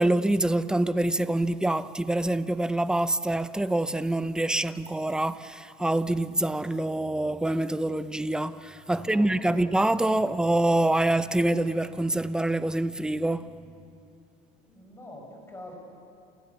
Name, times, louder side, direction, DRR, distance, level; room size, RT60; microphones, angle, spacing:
voice 1, 0.0-13.5, right 1 dB, 5° right, 0.6 m, -25 dB
voice 2, 8.9-10.3 14.6-15.8, left 1 dB, 15° left, 6.5 m, -45 dB
29.5 x 28.0 x 7.1 m
cardioid pair, 145°, 18 cm